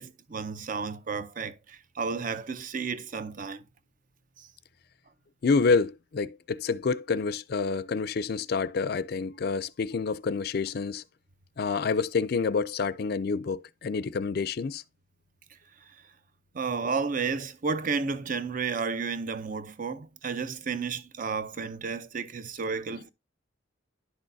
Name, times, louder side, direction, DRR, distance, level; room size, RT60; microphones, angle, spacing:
voice 1, 0.0-3.6 4.4-4.5 16.5-23.1, right 5 dB, 40° right, 0.6 m, -32 dB
voice 2, 5.4-11.0 11.6-14.8, left 4 dB, 50° left, 0.4 m, -28 dB
11.0 x 6.2 x 2.6 m
head